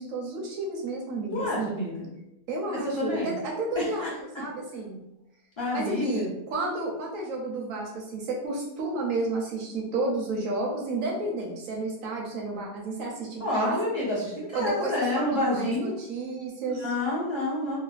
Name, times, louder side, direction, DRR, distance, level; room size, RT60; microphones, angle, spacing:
voice 1, 0.0-1.9 2.5-5.0 5.7-13.8 14.5-16.9, right 2 dB, 65° right, -2 dB, 0.9 m, -31 dB
voice 2, 1.3-2.1 2.7-3.3 3.8-4.1 5.6-6.3 13.4-16.0 16.8-17.8, left 1 dB, 40° left, -8 dB, 0.4 m, -28 dB
3.2 x 2.1 x 2.4 m, 0.85 s
omnidirectional pair, 1.8 m